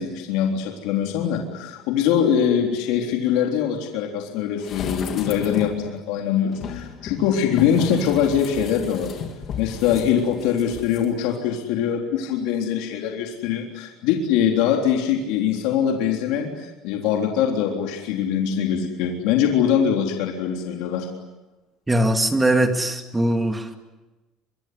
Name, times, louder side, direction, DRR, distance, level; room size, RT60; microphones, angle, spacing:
voice 1, 0.0-9.1 9.6-21.1, left 8 dB, 75° left, 2 dB, 3.6 m, -23 dB
sound 1, 4.6-5.9 6.5-11.0 11.3-11.4, left 6 dB, 40° left, 3.1 m, -34 dB
voice 2, 21.9-23.8, right 1 dB, 10° right, 6 dB, 2.2 m, -21 dB
24.5 x 23.5 x 9.7 m, 1.1 s
cardioid pair, 160°, 0 cm